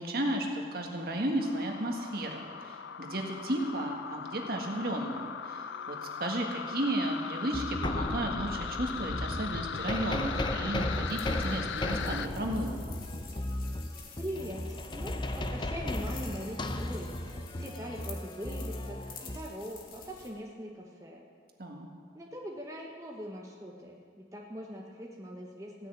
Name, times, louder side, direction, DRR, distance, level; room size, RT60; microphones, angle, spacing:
voice 1, 0.0-12.8 21.6-21.9, right 1 dB, 55° right, 1 dB, 1.7 m, -33 dB
sound 1, 1.4-12.3, left 7 dB, 80° left, 0.5 m, -39 dB
sound 2, 7.0-7.2 7.5-19.4, left 1 dB, 25° left, 0.6 m, -35 dB
sound 3, 10.9-20.3, left 5 dB, 50° left, 1.8 m, -50 dB
voice 2, 14.1-17.3 17.6-21.2 22.1-25.9, equal, 15° right, -2 dB, 1.0 m, -42 dB
15.5 x 6.5 x 9.1 m, 2.1 s
head